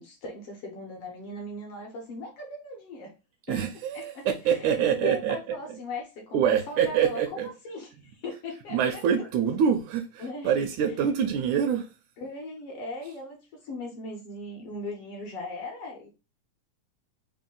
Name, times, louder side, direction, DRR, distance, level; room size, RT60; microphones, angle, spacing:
voice 1, 0.0-3.1 3.5-3.6 3.9-9.3 10.2-10.5 12.2-16.1, left 2 dB, 70° left, 1.5 m, -39 dB
voice 2, 3.5-5.4 6.3-7.5 8.7-11.8, right 8 dB, 80° right, 2.0 m, -25 dB
4.9 x 2.1 x 3.7 m
omnidirectional pair, 3.6 m